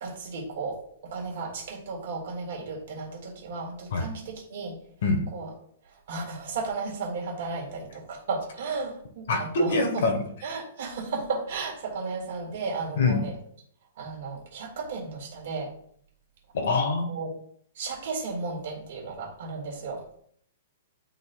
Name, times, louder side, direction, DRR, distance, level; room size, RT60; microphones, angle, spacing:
voice 1, 0.0-4.8 5.3-5.5 6.1-10.0 10.4-13.3 14.0-15.7 17.1-17.3 17.8-20.0, right 4 dB, 50° right, 0 dB, 1.8 m, -34 dB
voice 2, 9.3-10.2 13.0-13.3 16.5-17.1, left 3 dB, 55° left, 5 dB, 1.3 m, -24 dB
11.0 x 4.0 x 2.3 m, 0.64 s
hypercardioid pair, 180°, 0 cm